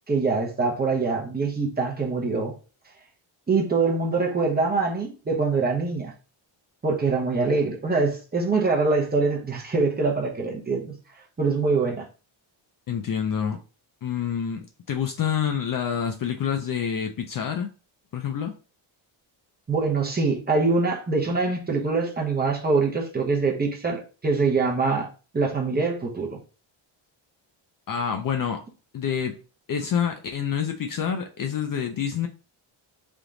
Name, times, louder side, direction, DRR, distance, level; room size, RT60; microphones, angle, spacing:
voice 1, 0.1-2.5 3.5-6.1 6.8-11.0 11.4-12.1 19.7-25.1 25.3-26.3, right 4 dB, 20° right, 0.8 m, -24 dB
voice 2, 12.9-13.6 14.0-17.7 18.1-18.6 27.9-28.6 28.9-29.4 29.7-32.3, left 8 dB, 45° left, 0.5 m, -27 dB
3.5 x 2.9 x 3.6 m
cardioid pair, 160°, 50 cm